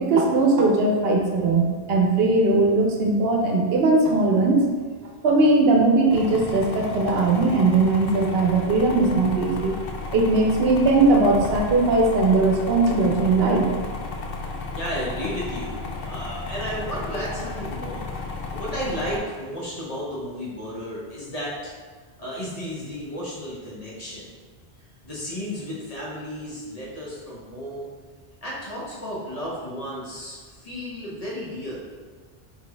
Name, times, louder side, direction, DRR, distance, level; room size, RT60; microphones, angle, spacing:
voice 1, 0.0-4.7 5.2-9.8 10.1-13.7, right 3 dB, 70° right, 1 dB, 0.9 m, -19 dB
sound 1, 6.1-19.2, left 3 dB, 65° left, 0.7 m, -33 dB
voice 2, 14.7-18.2 18.5-21.7 22.2-24.3 25.0-27.9 28.4-31.8, equal, 40° left, -6 dB, 1.1 m, -33 dB
4.1 x 3.1 x 3.3 m, 1.5 s
omnidirectional pair, 1.1 m